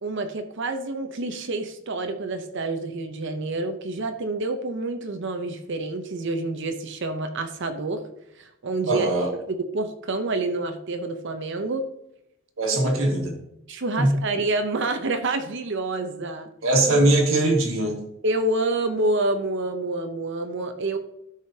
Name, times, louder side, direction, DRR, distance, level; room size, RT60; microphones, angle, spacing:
voice 1, 0.0-8.0 8.4-9.1 9.7-11.8 12.8-12.9 13.7-16.5 18.2-21.0, right 2 dB, 60° right, 7 dB, 0.7 m, -28 dB
voice 2, 8.9-9.3 12.6-13.3 14.0-14.2 16.6-18.0, right 2 dB, 80° right, 1 dB, 1.8 m, -21 dB
12.5 x 5.0 x 2.8 m, 0.82 s
head